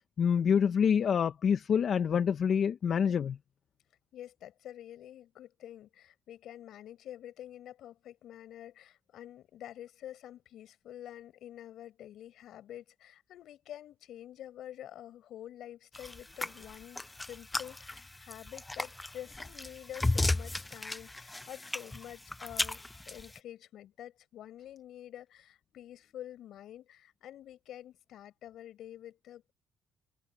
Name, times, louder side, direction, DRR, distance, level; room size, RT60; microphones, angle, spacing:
voice 1, 0.2-3.4, left 7 dB, 50° left, 1.0 m, -26 dB
voice 2, 4.1-29.5, left 11 dB, 65° left, 7.0 m, -48 dB
sound 1, 15.9-23.4, left 2 dB, 10° left, 0.4 m, -35 dB
cardioid pair, 110°, 0 cm